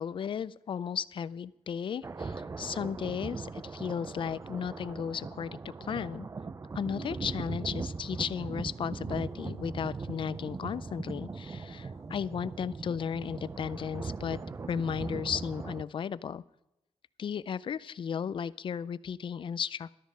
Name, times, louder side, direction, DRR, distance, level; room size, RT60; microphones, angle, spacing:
voice 1, 0.0-6.3 6.7-14.4 14.7-16.4 17.2-20.0, left 7 dB, 50° left, 18 dB, 0.4 m, -35 dB
Thunder Sounds Long, 2.0-15.8, right 4 dB, 25° right, 0.5 m, -39 dB
12.5 x 10.5 x 5.5 m, 0.91 s
wide cardioid pair, 125°, 11 cm